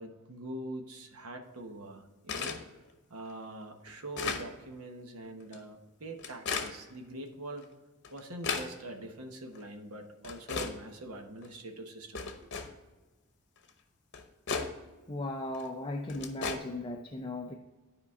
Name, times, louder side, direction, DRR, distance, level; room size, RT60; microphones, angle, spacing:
voice 1, 0.0-2.6 3.1-7.7 8.1-12.5, right 1 dB, 75° right, 4 dB, 1.1 m, -43 dB
sound 1, 2.3-2.6 3.3-3.4 3.9-4.5 5.4-5.6 6.2-6.7 7.6-7.7 8.0-8.7 9.5-9.6 10.2-10.8 11.4-11.5 12.1-12.7 13.7-13.8 14.1-14.7 15.5-15.6 16.1-16.6, left 5 dB, 50° left, 0.9 m, -35 dB
voice 2, 15.1-17.5, left 1 dB, 25° left, 2 dB, 0.5 m, -37 dB
11.0 x 5.0 x 3.6 m, 1.2 s
head